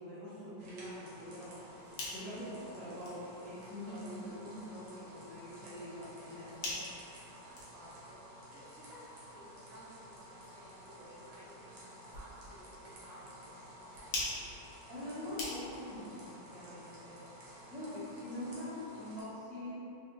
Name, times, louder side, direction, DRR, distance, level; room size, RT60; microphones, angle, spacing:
voice 1, 0.0-6.8 14.9-17.2 17.7-19.8, left 1 dB, 5° right, -14 dB, 0.8 m, -44 dB
sound 1, 0.6-19.2, equal, 90° right, 1.5 m, -53 dB
sound 2, 1.8-16.0, left 2 dB, 80° left, 1.5 m, -47 dB
voice 2, 7.4-9.0 9.3-14.3, equal, 55° right, -8 dB, 1.1 m, -56 dB
4.1 x 2.6 x 2.5 m, 2.9 s
omnidirectional pair, 1.9 m